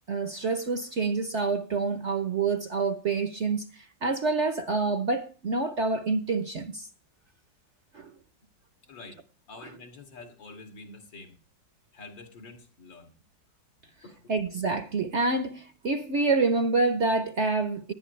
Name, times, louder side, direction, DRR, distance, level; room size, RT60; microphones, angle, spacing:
voice 1, 0.1-6.9 7.9-8.1 14.3-17.9, right 3 dB, 50° right, 0.9 m, -27 dB
voice 2, 8.8-11.4 11.9-13.1 14.0-14.2, left 3 dB, 80° left, 3.2 m, -47 dB
18.5 x 11.0 x 3.2 m
omnidirectional pair, 2.0 m